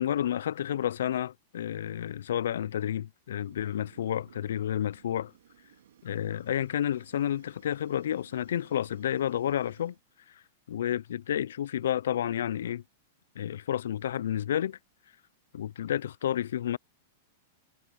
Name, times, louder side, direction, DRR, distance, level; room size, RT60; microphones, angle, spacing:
voice 1, 0.0-5.3 6.0-9.9 10.7-12.8 13.4-14.8 15.5-16.8, left 10 dB, 80° left, 0.4 m, -30 dB
Fire, 3.4-10.0, right 10 dB, 80° right, 2.2 m, -59 dB
hypercardioid pair, 125°, 0 cm